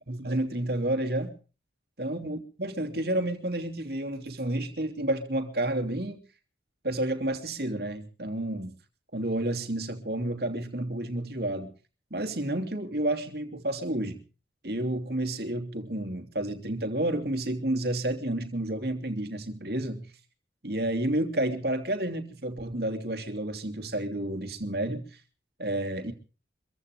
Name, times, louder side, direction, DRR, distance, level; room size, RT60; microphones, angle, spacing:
voice 1, 0.1-1.4 2.0-6.2 6.8-8.7 9.1-11.7 12.1-14.2 14.6-20.1 20.6-25.1 25.6-26.1, right 1 dB, 60° right, 3.1 m, -30 dB
25.5 x 15.5 x 3.6 m
head